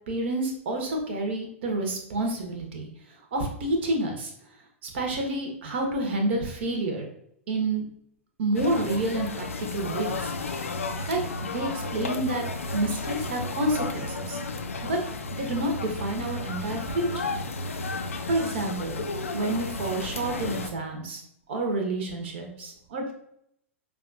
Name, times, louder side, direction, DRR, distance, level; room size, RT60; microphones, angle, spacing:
voice 1, 0.1-2.9 3.3-4.3 4.8-7.1 7.5-7.9 8.4-10.3 11.1-12.4 12.7-14.4 14.8-15.0 15.4-17.3 18.3-19.0 19.3-21.2 21.5-23.1, right 2 dB, 50° right, 2 dB, 0.9 m, -29 dB
sound 1, 8.5-20.7, left 3 dB, 70° left, 0.4 m, -33 dB
5.0 x 2.4 x 2.5 m, 0.74 s
figure-of-eight pair, 105°, 8 cm